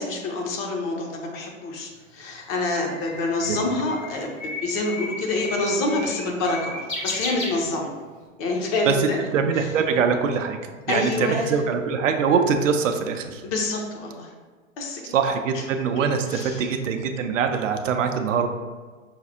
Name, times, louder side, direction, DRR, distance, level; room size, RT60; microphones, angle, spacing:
voice 1, 0.0-7.9 8.4-9.2 9.6-9.7 10.9-11.6 13.4-14.3 14.8-15.1 15.5-15.6 16.3-16.7, left 2 dB, 35° left, 1 dB, 0.7 m, -27 dB
Bird, 1.9-8.2, left 2 dB, 75° left, 1.0 m, -34 dB
voice 2, 9.3-10.6 10.9-13.4 15.1-18.5, right 6 dB, 70° right, 6 dB, 0.5 m, -23 dB
5.7 x 2.3 x 2.7 m, 1.4 s
figure-of-eight pair, 95°, 40 cm